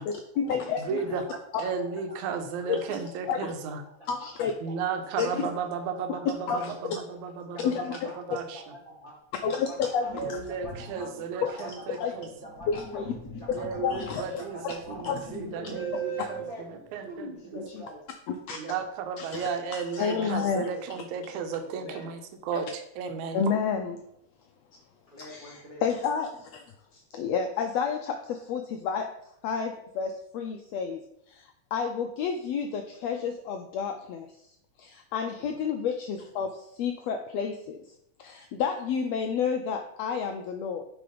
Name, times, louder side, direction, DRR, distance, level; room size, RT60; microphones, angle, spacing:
voice 1, 0.0-1.0 2.7-3.5 4.1-4.5 5.2-5.5 6.5-6.7 7.6-8.1 9.4-10.4 11.4-11.6 12.0-12.1 12.7-13.1 13.8-14.7 15.0-15.2 17.6-17.8 18.5-18.6 19.2-20.7 23.3-24.0 25.2-26.6 26.9-29.1 29.4-34.3 34.8-37.8 38.2-40.8, left 6 dB, 90° left, 5 dB, 1.4 m, -30 dB
voice 2, 0.9-1.2 1.6-3.8 4.6-7.7 8.2-8.6 10.1-12.3 13.5-16.4 16.9-17.3 18.6-23.4, right 5 dB, 75° right, 6 dB, 2.1 m, -34 dB
voice 3, 2.2-2.9 3.5-4.3 4.6-5.2 5.8-6.2 6.6-6.7 7.4-8.1 8.4-10.1 10.5-12.0 12.4-15.0 15.3-16.7 17.0-18.1 18.5-18.8 20.1-20.8 21.7-22.1 25.1-25.8 35.4-35.5, right 3 dB, 50° right, -4 dB, 0.6 m, -43 dB
Sink (filling or washing), 9.4-9.5 10.1-17.4, left 3 dB, 70° left, 0.8 m, -46 dB
8.9 x 3.8 x 5.0 m, 0.76 s
omnidirectional pair, 3.6 m